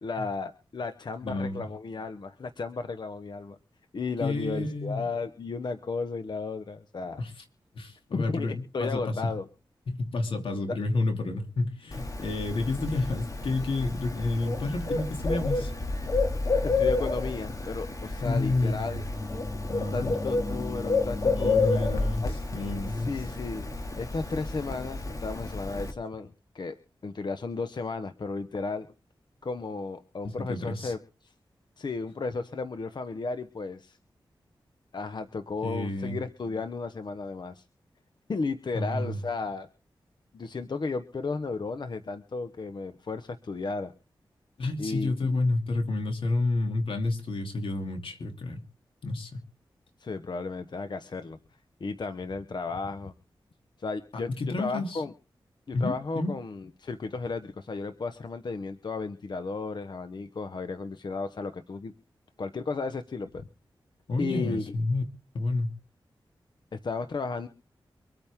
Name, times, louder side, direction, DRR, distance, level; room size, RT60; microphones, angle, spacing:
voice 1, 0.0-3.6 3.9-7.2 8.1-9.5 10.7-10.8 16.6-19.0 19.9-21.7 22.2-22.4 22.9-23.7 24.0-26.8 27.0-28.9 29.4-31.3 31.8-34.0 34.9-37.6 38.3-39.7 40.3-43.9 44.8-45.4 50.0-51.4 51.8-53.1 53.8-55.1 55.7-61.9 62.4-63.5 64.2-64.6 66.7-67.5, left 4 dB, 55° left, 9 dB, 1.0 m, -34 dB
voice 2, 1.2-1.7 4.2-5.1 7.2-7.3 7.7-9.2 9.9-15.7 18.2-19.0 19.7-20.1 21.4-22.2 22.5-23.1 30.4-30.9 35.6-36.2 38.7-39.2 44.6-48.6 49.0-49.4 54.3-55.0 55.7-56.4 64.1-65.0 65.3-65.7, left 2 dB, 75° left, 4 dB, 2.9 m, -30 dB
Bird, 11.9-25.9, left 3 dB, 40° left, 2.5 m, -30 dB
24.5 x 9.1 x 3.7 m, 0.36 s
wide cardioid pair, 80°, 9 cm